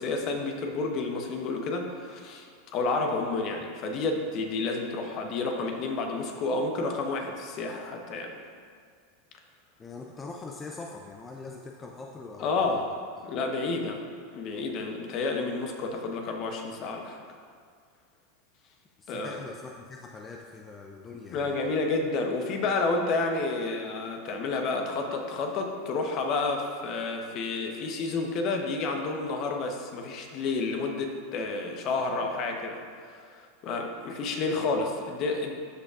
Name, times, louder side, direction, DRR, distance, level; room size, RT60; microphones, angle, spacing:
voice 1, 0.0-2.5 2.7-8.3 12.4-12.9 13.2-14.0 14.3-17.2 19.1-19.4 21.3-32.8 33.0-35.5, left 3 dB, 50° left, 3 dB, 1.0 m, -30 dB
voice 2, 9.8-12.8 19.0-21.7, left 3 dB, 20° left, 1 dB, 0.5 m, -42 dB
12.5 x 5.3 x 2.5 m, 2.1 s
hypercardioid pair, 100°, 0 cm